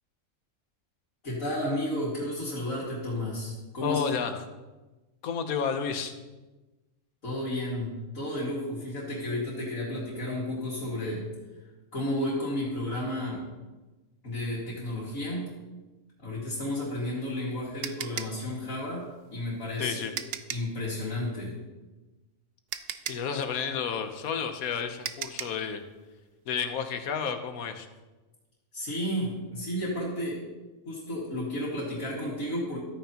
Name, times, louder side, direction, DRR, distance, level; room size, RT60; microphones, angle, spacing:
voice 1, 1.2-4.0 7.2-11.2 11.9-13.4 14.2-15.5 16.2-19.1 19.3-20.2 20.5-21.5 28.7-30.4 30.9-32.8, left 1 dB, 70° left, -9 dB, 2.5 m, -32 dB
voice 2, 3.8-4.4 5.2-6.1 19.8-20.1 23.1-25.8 26.5-27.9, left 7 dB, 85° left, 7 dB, 1.3 m, -31 dB
sound 1, 16.9-20.8 22.2-22.3 22.7-25.7, right 9 dB, 65° right, 0.6 m, -38 dB
13.0 x 9.1 x 2.9 m, 1.2 s
omnidirectional pair, 1.5 m